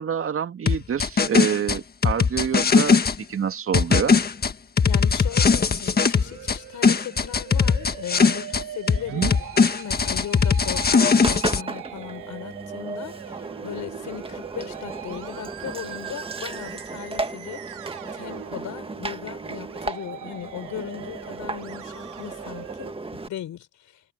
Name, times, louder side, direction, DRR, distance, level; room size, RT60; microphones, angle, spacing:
voice 1, 0.0-3.0 3.3-4.2 9.1-9.3, right 8 dB, 45° right, 2.2 m, -26 dB
sound 1, 0.7-3.2 3.7-6.6 6.8-8.6 8.9-11.6, left 5 dB, 30° left, 1.6 m, -19 dB
voice 2, 4.8-17.6 18.1-24.0, left 11 dB, 75° left, 5.4 m, -38 dB
Musical instrument, 4.9-22.9, right 13 dB, 80° right, 3.2 m, -41 dB
Engine, 11.2-23.3, right 3 dB, 20° right, 1.7 m, -35 dB
cardioid pair, 90°, 30 cm